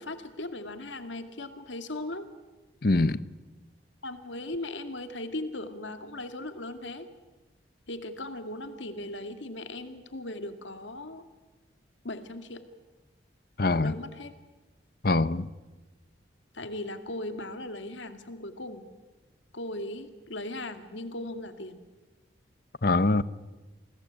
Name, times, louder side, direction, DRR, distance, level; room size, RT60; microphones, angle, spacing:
voice 1, 0.0-2.3 4.0-7.1 7.9-11.2 12.0-12.6 13.7-14.3 16.5-18.9 19.5-21.8, left 1 dB, 85° left, 2.2 m, -38 dB
voice 2, 2.8-3.2 13.6-13.9 15.0-15.5 22.8-23.2, left 2 dB, 55° left, 0.8 m, -23 dB
29.0 x 21.0 x 8.8 m
head